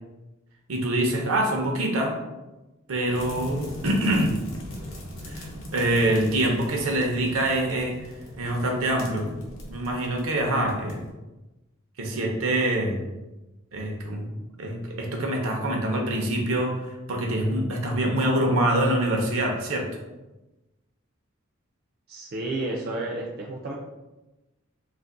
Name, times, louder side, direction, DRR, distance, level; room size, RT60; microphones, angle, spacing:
voice 1, 0.7-2.1 2.9-4.4 5.3-8.0 8.4-9.3 9.7-11.0 12.0-13.0 13.7-14.3 14.6-16.7 17.1-19.9, right 1 dB, 80° right, 1 dB, 0.7 m, -25 dB
sound 1, 3.1-11.1, equal, 75° left, 0.8 m, -40 dB
voice 2, 22.1-23.7, right 2 dB, 50° right, -2 dB, 0.4 m, -31 dB
2.5 x 2.5 x 3.7 m, 1.1 s
head